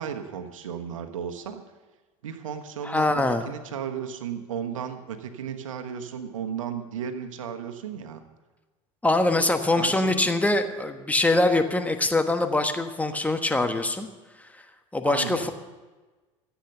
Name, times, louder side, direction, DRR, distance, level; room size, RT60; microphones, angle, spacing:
voice 1, 0.0-1.6 2.2-8.2 9.7-10.3 15.0-15.5, right 8 dB, 85° right, 7 dB, 1.3 m, -34 dB
voice 2, 2.8-3.5 9.0-14.1 14.9-15.5, left 2 dB, 10° left, 7 dB, 1.2 m, -23 dB
14.5 x 8.4 x 6.8 m, 1.3 s
hypercardioid pair, 90°, 16 cm